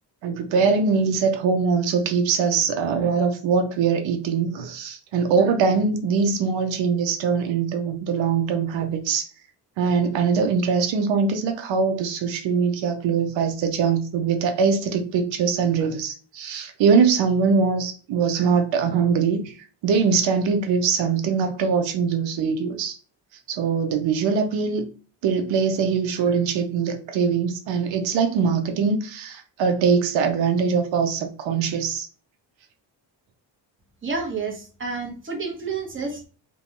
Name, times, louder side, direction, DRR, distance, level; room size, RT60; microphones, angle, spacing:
voice 1, 0.2-9.3 9.8-19.5 19.8-23.0 23.5-24.8 25.2-32.1, right 5 dB, 85° right, 0.6 m, -22 dB
voice 2, 34.0-36.2, right 4 dB, 25° right, 0.9 m, -30 dB
2.6 x 2.2 x 2.8 m
cardioid pair, 100°, 44 cm